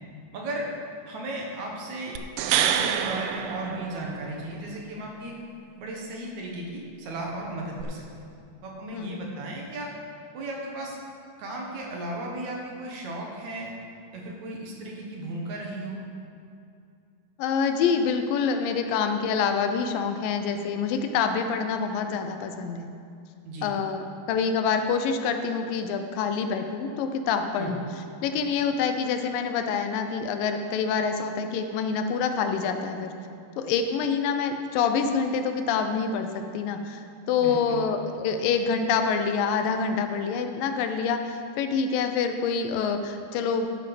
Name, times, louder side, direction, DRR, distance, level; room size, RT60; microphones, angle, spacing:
voice 1, 0.3-0.7 1.1-2.1 2.5-5.3 5.8-8.0 8.6-9.9 10.3-11.0 11.4-13.8 14.1-16.0 23.4-23.7 27.6-27.8 37.4-37.8, right 2 dB, 60° right, -1 dB, 2.4 m, -35 dB
sound 1, 2.2-4.4 7.8-7.9, right 9 dB, 80° right, 2.1 m, -27 dB
voice 2, 17.4-22.9 23.6-24.0 24.3-27.8 28.2-33.1 33.6-43.7, left 6 dB, 80° left, 7 dB, 2.4 m, -26 dB
12.0 x 7.3 x 5.3 m, 2.5 s
omnidirectional pair, 4.0 m